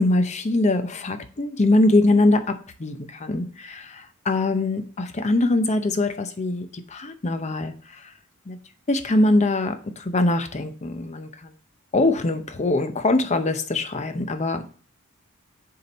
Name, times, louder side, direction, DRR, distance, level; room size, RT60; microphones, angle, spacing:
voice 1, 0.0-8.1 8.5-8.6 8.9-11.5 11.9-14.7, left 2 dB, 35° left, 9 dB, 0.7 m, -23 dB
6.5 x 4.3 x 4.1 m, 0.42 s
head